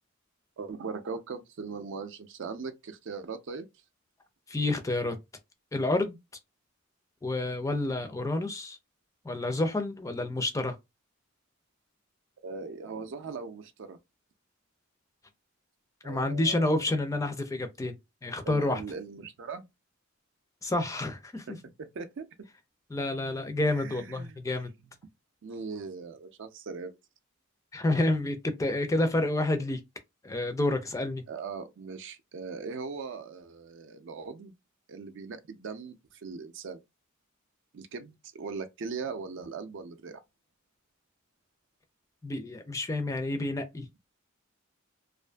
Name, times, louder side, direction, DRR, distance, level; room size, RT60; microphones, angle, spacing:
voice 1, 0.6-3.7 12.4-14.0 16.0-16.9 18.4-19.7 21.5-22.3 23.7-24.4 25.4-27.0 31.3-34.5 34.9-35.9 36.2-36.8 37.7-40.2, right 5 dB, 60° right, 0.4 m, -39 dB
voice 2, 4.5-5.2 5.7-6.2 7.2-8.8 9.2-10.8 16.0-18.0 18.2-18.8 20.6-21.5 22.9-24.7 27.7-29.8 30.2-31.2 42.2-43.9, left 2 dB, 15° left, 0.3 m, -29 dB
2.5 x 2.4 x 2.2 m
head